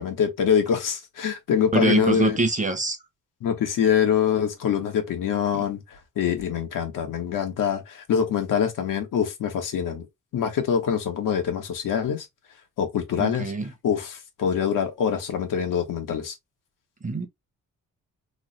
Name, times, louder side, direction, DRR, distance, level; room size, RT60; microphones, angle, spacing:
voice 1, 0.0-2.4 3.4-10.1 10.3-12.3 12.8-13.5 13.8-16.3, left 8 dB, 90° left, 1.0 m, -24 dB
voice 2, 1.7-3.0 5.5-5.6 13.2-13.7 17.0-17.3, right 3 dB, 25° right, 0.8 m, -24 dB
3.1 x 2.0 x 3.9 m
cardioid pair, 110°, 31 cm